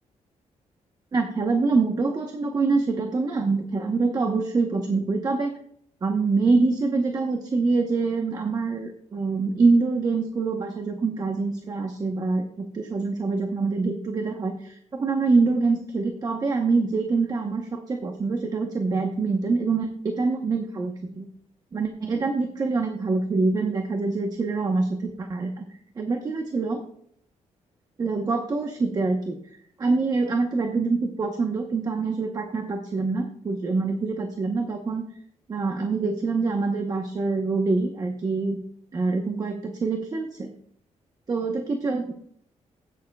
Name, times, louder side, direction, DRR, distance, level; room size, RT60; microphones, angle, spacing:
voice 1, 1.1-5.5 6.0-21.3 21.7-25.6 26.0-26.8 28.0-29.4 29.8-35.0 35.5-38.6 38.9-40.5 41.3-42.1, right 3 dB, 30° right, 4 dB, 0.9 m, -25 dB
15.5 x 9.2 x 2.3 m, 0.66 s
wide cardioid pair, 170°, 12 cm